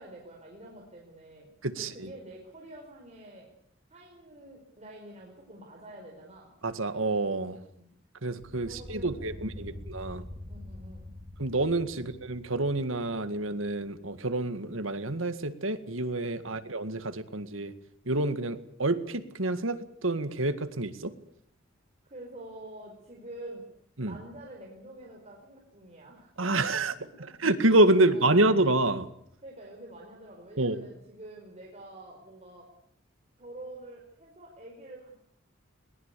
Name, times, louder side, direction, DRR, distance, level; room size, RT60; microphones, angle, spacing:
voice 1, 0.0-3.5 3.9-6.5 7.7-7.9 8.6-9.8 10.5-11.1 11.9-12.1 22.1-23.6 24.0-26.3 27.2-27.3 28.0-28.5 29.4-32.7 33.4-35.1, right 1 dB, 35° right, -1 dB, 5.0 m, -47 dB
voice 2, 1.6-2.1 6.6-7.6 8.2-10.2 11.4-17.7 18.1-21.1 24.0-24.2 26.4-29.1 30.6-30.8, right 2 dB, 85° right, 10 dB, 2.0 m, -27 dB
sound 1, 8.4-13.6, left 1 dB, 10° right, 2.9 m, -45 dB
22.0 x 19.5 x 8.4 m, 0.67 s
head